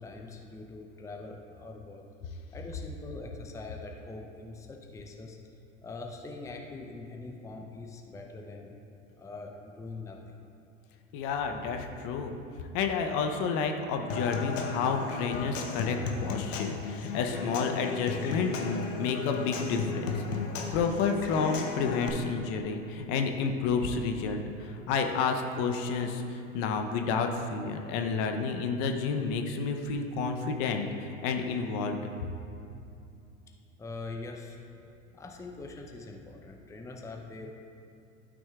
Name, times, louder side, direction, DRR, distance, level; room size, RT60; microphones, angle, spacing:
voice 1, 0.0-2.0 2.5-5.4 5.8-8.8 9.2-10.5 33.8-34.6 35.1-37.5, left 3 dB, 10° left, 1 dB, 0.6 m, -43 dB
voice 2, 11.1-12.3 12.7-20.2 20.7-32.0, left 5 dB, 55° left, 4 dB, 0.8 m, -30 dB
Human voice / Acoustic guitar / Percussion, 14.1-22.1, left 4 dB, 85° left, 0.9 m, -35 dB
12.0 x 6.1 x 2.4 m, 2.6 s
hypercardioid pair, 90°, 38 cm